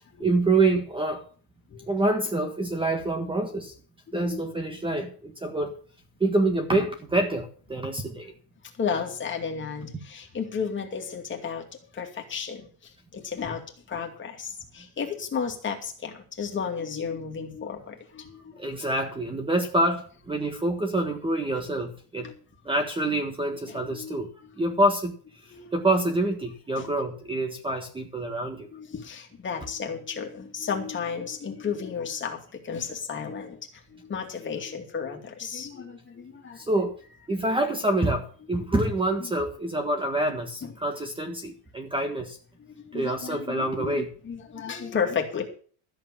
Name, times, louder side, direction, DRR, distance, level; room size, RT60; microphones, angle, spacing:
voice 1, 0.2-1.2 1.9-3.7 4.1-5.7 6.2-8.3 18.6-22.3 22.6-24.3 24.6-25.1 25.7-28.7 36.6-37.0 37.3-42.4 42.9-44.1, right 2 dB, 10° right, 1.6 m, -26 dB
voice 2, 4.1-4.4 8.8-11.7 11.9-18.8 22.2-22.3 23.7-24.3 25.5-25.7 26.7-26.9 28.7-36.7 37.4-37.6 40.6-40.7 42.7-45.5, left 6 dB, 25° left, 2.5 m, -33 dB
13.5 x 7.7 x 7.1 m
cardioid pair, 170°, 43 cm